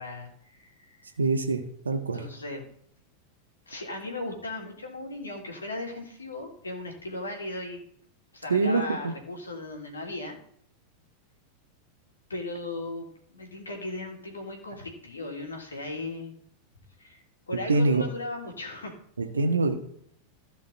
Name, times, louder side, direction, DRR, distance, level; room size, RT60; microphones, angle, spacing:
voice 1, 0.0-1.1 2.1-2.7 3.7-7.8 8.3-10.4 12.3-16.3 17.0-19.0, left 2 dB, 80° left, 1 dB, 3.3 m, -37 dB
voice 2, 1.2-2.2 8.5-9.1 17.7-18.0 19.2-19.7, right 3 dB, 80° right, 6 dB, 1.5 m, -24 dB
16.0 x 5.7 x 4.3 m, 0.67 s
figure-of-eight pair, 90°, 0 cm